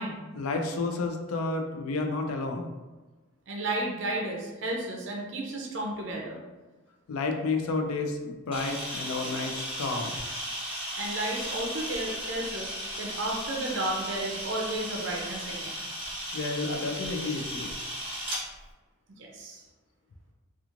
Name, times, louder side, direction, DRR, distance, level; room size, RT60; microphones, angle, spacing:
voice 1, 0.3-2.7 7.1-10.2 16.3-17.7, left 3 dB, 85° left, 3 dB, 0.4 m, -31 dB
voice 2, 3.5-6.4 11.0-12.7 13.0-15.9 19.2-19.6, right 1 dB, 55° right, -1 dB, 0.5 m, -33 dB
Camera, 8.5-18.4, equal, 25° right, 0.8 m, -36 dB
2.9 x 2.4 x 2.4 m, 1.2 s
head